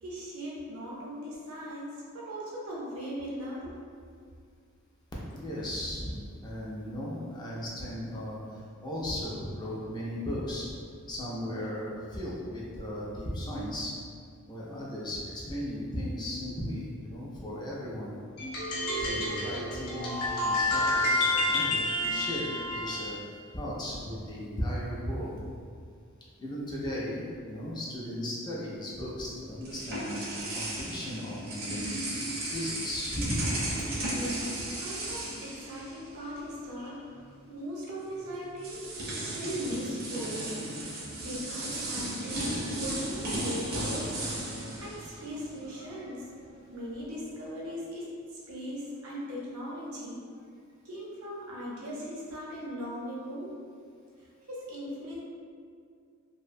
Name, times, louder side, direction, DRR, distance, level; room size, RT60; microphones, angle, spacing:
voice 1, 0.0-3.8 34.0-40.6 40.8-50.3 50.8-53.6 54.1-55.2, equal, 85° right, -6 dB, 0.7 m, -39 dB
voice 2, 5.3-10.7 11.1-13.9 14.5-18.1 19.0-25.6 26.4-31.9 32.4-33.6, equal, 20° left, -5 dB, 0.3 m, -36 dB
sound 1, 18.4-23.1, left 1 dB, 90° left, 0.7 m, -29 dB
sound 2, 29.1-36.4 36.7-36.9 38.0-38.1 38.6-45.7, right 1 dB, 45° right, 0.5 m, -35 dB
2.5 x 2.1 x 2.5 m, 2.2 s
head